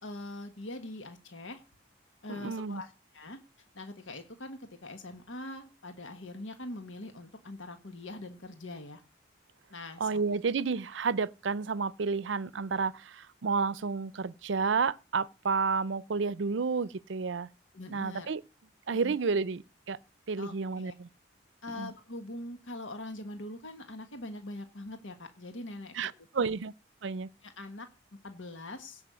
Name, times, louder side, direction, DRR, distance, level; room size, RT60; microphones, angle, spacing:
voice 1, 0.0-1.6 2.2-3.4 3.7-9.0 9.7-10.2 17.7-18.3 19.0-19.1 20.4-20.9 21.6-25.9 26.4-26.5 27.4-27.9 28.2-29.0, left 2 dB, 85° left, 1.5 m, -43 dB
voice 2, 2.3-2.8 10.0-17.5 17.9-18.4 18.9-19.6 19.9-20.0 20.3-21.1 21.7-21.9 25.9-26.7 27.0-27.3, right 5 dB, 75° right, 0.5 m, -31 dB
16.5 x 5.6 x 6.8 m
head